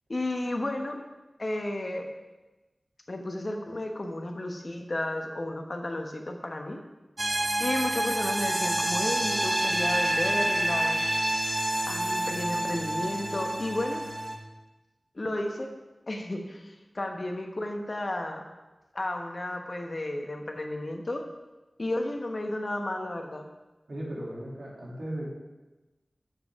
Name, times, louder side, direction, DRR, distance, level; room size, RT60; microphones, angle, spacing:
voice 1, 0.1-1.0 1.4-2.1 3.1-6.8 7.6-11.0 11.9-14.0 15.1-15.7 16.1-18.4 18.9-21.2 21.8-23.4, left 1 dB, 50° left, 4 dB, 1.1 m, -33 dB
sound 1, 7.2-14.4, right 1 dB, 50° right, 1.0 m, -28 dB
voice 2, 23.9-25.3, right 1 dB, 80° right, -4 dB, 2.7 m, -36 dB
10.5 x 7.5 x 3.6 m, 1.1 s
wide cardioid pair, 70°, 0 cm